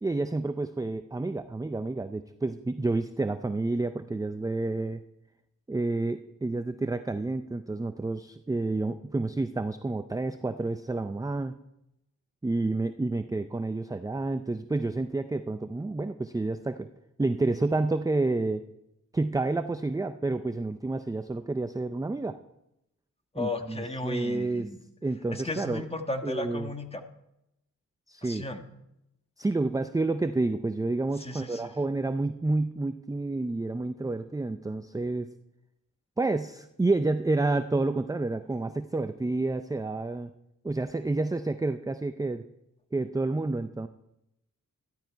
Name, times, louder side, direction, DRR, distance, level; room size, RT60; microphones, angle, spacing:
voice 1, 0.0-5.0 5.7-11.6 12.4-16.9 17.2-18.7 19.1-22.4 23.4-24.7 25.0-25.8 26.2-26.7 28.1-28.5 29.4-35.3 36.2-40.3 40.6-42.4 42.9-43.9, right 2 dB, 10° right, 9 dB, 0.5 m, -29 dB
voice 2, 23.3-24.8 25.3-27.0 28.2-28.6 31.2-31.7, left 2 dB, 20° left, 6 dB, 1.4 m, -35 dB
13.5 x 12.0 x 4.6 m, 0.86 s
cardioid pair, 85°, 32 cm